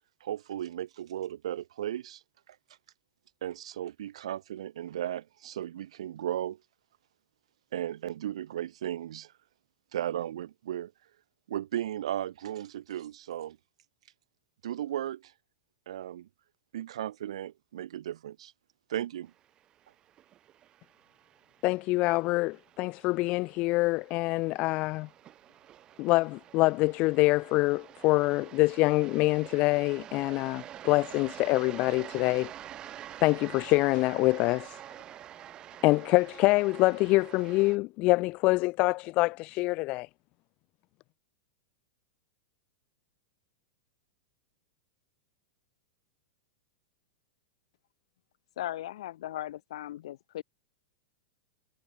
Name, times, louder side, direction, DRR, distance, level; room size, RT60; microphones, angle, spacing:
voice 1, 0.2-2.2 3.4-6.6 7.7-9.3 9.9-10.9 11.5-13.6 14.6-15.3 15.9-16.3 16.7-18.5 18.9-19.3, right 11 dB, 80° right, 2.2 m, -35 dB
sound 1, 19.4-37.8, right 11 dB, 25° right, 7.0 m, -47 dB
voice 2, 21.6-25.1 26.0-32.5 33.2-34.8 35.8-40.1, left 22 dB, 40° left, 1.1 m, -25 dB
voice 3, 48.6-50.4, left 13 dB, 70° left, 7.2 m, -37 dB
supercardioid pair, 150°, 3 cm